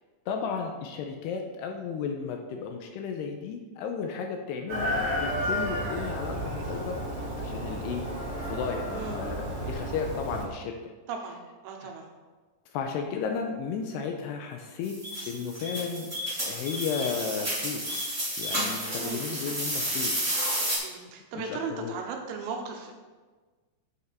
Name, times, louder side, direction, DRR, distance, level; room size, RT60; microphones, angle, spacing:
voice 1, 0.3-7.0 7.4-8.0 8.4-10.8 12.7-15.0 15.3-16.1 16.4-18.0 18.4-20.2 21.3-21.9, left 6 dB, 80° left, 3 dB, 2.5 m, -34 dB
Chicken rooster, 4.7-10.5, equal, 50° right, 2.6 m, -32 dB
voice 2, 11.1-11.4 11.6-12.1 19.0-19.6 20.8-22.9, right 5 dB, 80° right, 3 dB, 3.1 m, -37 dB
sound 1, 14.8-20.8, equal, 10° right, 0.6 m, -31 dB
8.2 x 5.9 x 4.5 m, 1.3 s
omnidirectional pair, 5.1 m